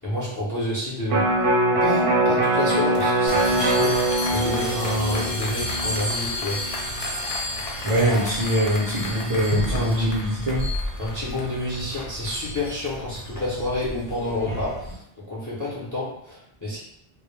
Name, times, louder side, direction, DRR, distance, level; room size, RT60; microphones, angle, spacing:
voice 1, 0.0-1.3 1.8-4.0 4.3-6.6 9.7-10.1 11.0-16.8, left 1 dB, 25° left, -7 dB, 0.5 m, -29 dB
Electric guitar, 1.1-7.3 7.7-7.8, right 1 dB, 75° right, 0.8 m, -23 dB
sound 1, 2.8-14.2, left 3 dB, 75° left, 0.8 m, -37 dB
sound 2, 3.3-14.9, left 1 dB, 45° left, 0.9 m, -32 dB
voice 2, 7.8-10.6, right 1 dB, 40° right, -7 dB, 0.6 m, -23 dB
2.1 x 2.1 x 3.1 m, 0.73 s
omnidirectional pair, 1.0 m